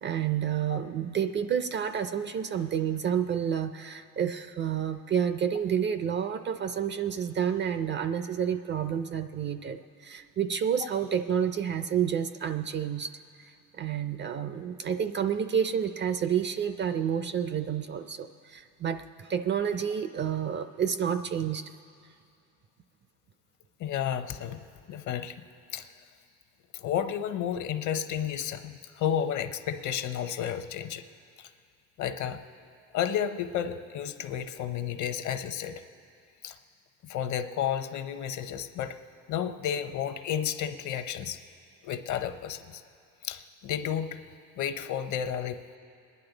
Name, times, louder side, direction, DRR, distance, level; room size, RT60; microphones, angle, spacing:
voice 1, 0.0-21.7, right 8 dB, 30° right, 10 dB, 0.4 m, -29 dB
voice 2, 23.8-24.6 24.9-25.4 25.7-25.9 26.7-31.0 31.4-31.5 32.0-32.4 32.9-35.8 36.4-36.6 37.0-39.0 39.3-41.4 41.8-42.8 43.2-45.8, left 9 dB, 50° left, 9 dB, 0.8 m, -32 dB
26.0 x 11.0 x 3.9 m, 2.4 s
cardioid pair, 115°, 38 cm